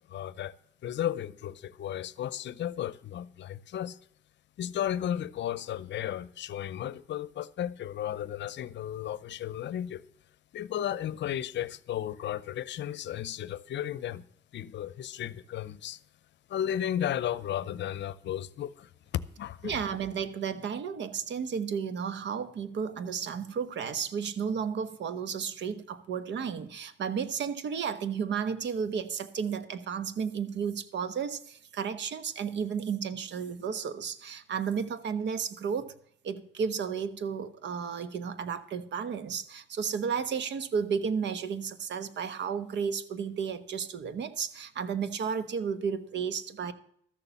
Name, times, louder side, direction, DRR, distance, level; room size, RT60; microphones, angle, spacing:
voice 1, 0.1-0.5 0.8-4.0 4.6-10.0 10.5-14.2 14.5-16.0 16.5-18.9 19.4-19.8, left 10 dB, 65° left, 0.7 m, -34 dB
voice 2, 19.6-35.9 36.2-46.7, right 6 dB, 65° right, 1.1 m, -33 dB
13.5 x 6.9 x 7.1 m
cardioid pair, 90°, 20 cm